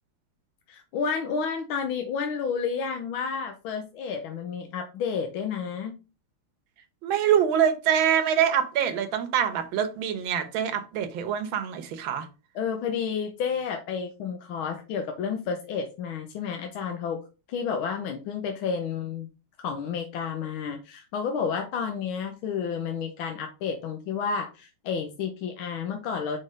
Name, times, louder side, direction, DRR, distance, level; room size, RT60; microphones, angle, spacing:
voice 1, 0.7-6.0 12.5-17.2 17.5-19.3 19.6-26.4, left 6 dB, 70° left, 1.6 m, -31 dB
voice 2, 7.0-12.3, right 9 dB, 70° right, 1.7 m, -25 dB
5.5 x 4.3 x 5.1 m
omnidirectional pair, 2.4 m